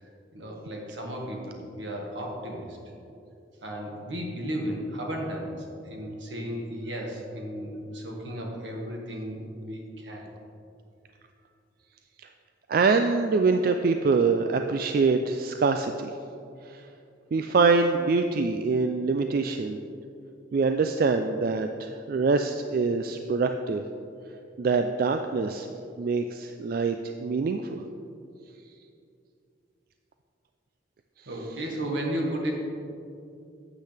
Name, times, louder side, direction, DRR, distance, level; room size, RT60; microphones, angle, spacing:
voice 1, 0.3-2.8 3.6-10.2 31.3-32.5, equal, 80° right, 0 dB, 1.7 m, -34 dB
voice 2, 12.7-16.1 16.7-16.8 17.3-19.8 20.5-23.8 24.6-25.7 26.0-27.8, right 4 dB, 50° right, 7 dB, 0.3 m, -24 dB
12.0 x 8.2 x 3.4 m, 2.6 s
head